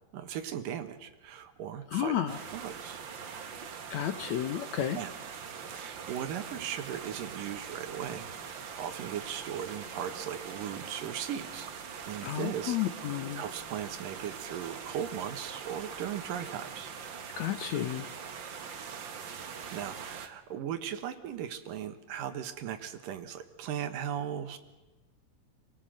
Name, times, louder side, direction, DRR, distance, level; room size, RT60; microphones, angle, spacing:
voice 1, 0.1-3.0 4.9-5.1 5.7-11.7 12.1-12.8 13.1-16.9 19.7-24.6, right 9 dB, 75° right, 9 dB, 2.9 m, -38 dB
voice 2, 1.9-2.4 3.9-5.0 12.2-13.4 17.4-18.1, left 10 dB, 65° left, 9 dB, 1.9 m, -32 dB
sound 1, 2.3-20.3, right 6 dB, 55° right, 1.3 m, -43 dB
28.0 x 18.5 x 7.7 m, 1.1 s
omnidirectional pair, 4.1 m